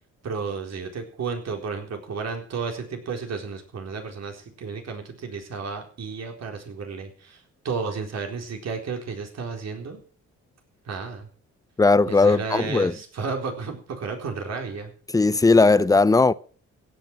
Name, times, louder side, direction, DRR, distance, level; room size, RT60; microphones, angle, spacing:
voice 1, 0.2-10.0 10.9-11.3 12.1-14.9, right 5 dB, 60° right, 4.1 m, -32 dB
voice 2, 11.8-13.0 15.1-16.3, left 3 dB, 10° left, 0.6 m, -18 dB
16.0 x 9.2 x 6.1 m
cardioid pair, 90°, 30 cm